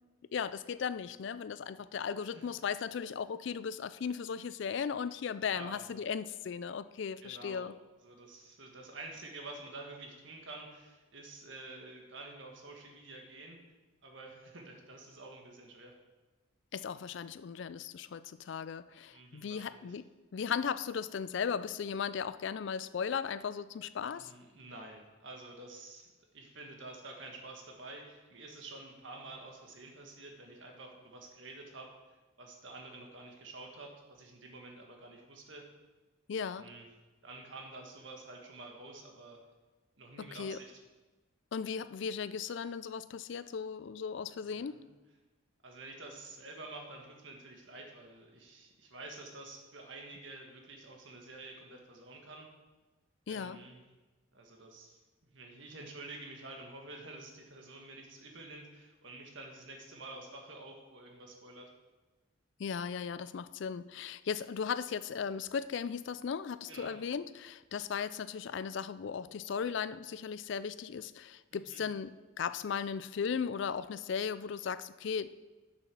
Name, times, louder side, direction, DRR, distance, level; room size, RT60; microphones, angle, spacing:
voice 1, 0.3-7.7 16.7-24.3 36.3-36.7 40.2-40.6 41.5-44.8 53.3-53.6 62.6-75.3, left 6 dB, 60° left, 15 dB, 0.3 m, -37 dB
voice 2, 7.2-7.7 8.0-13.6 14.0-15.9 19.1-20.0 24.1-26.1 26.3-31.9 32.4-35.7 36.5-36.9 37.2-39.4 40.0-40.8 44.5-44.9 45.6-52.5 53.3-53.8 54.3-55.0 55.3-61.7 66.7-67.0 71.5-71.8, right 2 dB, 65° right, 2 dB, 1.6 m, -49 dB
6.9 x 6.6 x 6.0 m, 1.2 s
head